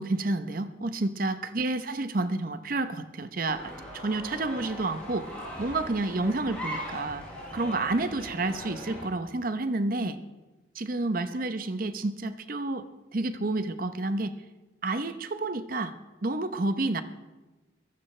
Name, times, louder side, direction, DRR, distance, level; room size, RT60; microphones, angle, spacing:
voice 1, 0.0-5.3 5.6-7.3 7.5-10.2 10.7-14.4 14.8-17.0, right 2 dB, 50° right, 11 dB, 0.8 m, -30 dB
sound 1, 3.4-9.0, equal, 5° left, 6.6 m, -40 dB
23.0 x 15.5 x 3.3 m, 1.2 s
head